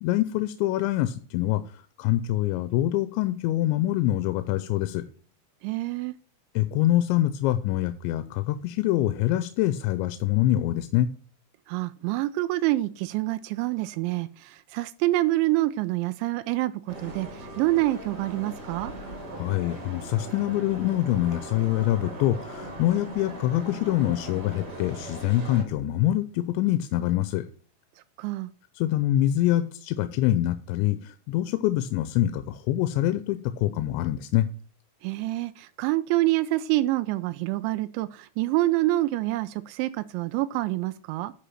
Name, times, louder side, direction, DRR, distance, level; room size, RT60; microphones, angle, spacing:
voice 1, 0.0-5.0 6.6-11.1 19.4-27.4 28.8-34.5, left 14 dB, 90° left, 11 dB, 2.9 m, -25 dB
voice 2, 5.6-6.1 11.7-18.9 28.2-28.5 35.0-41.3, right 17 dB, 85° right, 12 dB, 2.9 m, -27 dB
sound 1, 16.9-25.6, right 1 dB, 30° right, 2.2 m, -39 dB
10.0 x 5.0 x 5.6 m, 0.42 s
omnidirectional pair, 5.2 m